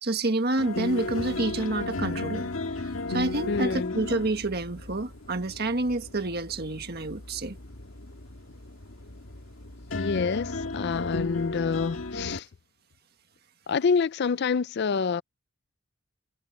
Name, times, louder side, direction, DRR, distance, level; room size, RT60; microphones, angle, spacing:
voice 1, 0.0-2.5 2.7-7.6, right 2 dB, 50° right, 1.6 m, -28 dB
sound 1, 0.6-12.4, left 2 dB, 75° left, 2.0 m, -35 dB
voice 2, 3.5-3.9 9.9-12.5 13.7-15.2, left 5 dB, 55° left, 0.4 m, -27 dB
head